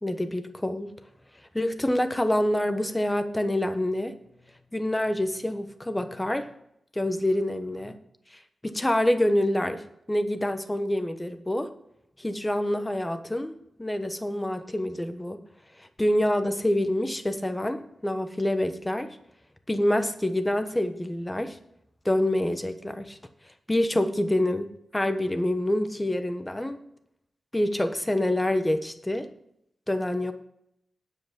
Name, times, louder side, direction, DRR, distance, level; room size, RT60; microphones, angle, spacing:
voice 1, 0.0-0.9 1.5-4.1 4.7-6.5 6.9-8.0 8.6-11.7 12.2-13.5 13.8-15.4 16.0-19.1 19.7-21.6 22.0-23.2 23.7-26.8 27.5-29.2 29.9-30.3, left 1 dB, 10° left, 8 dB, 1.0 m, -26 dB
9.3 x 8.2 x 5.9 m, 0.75 s
wide cardioid pair, 130°, 0 cm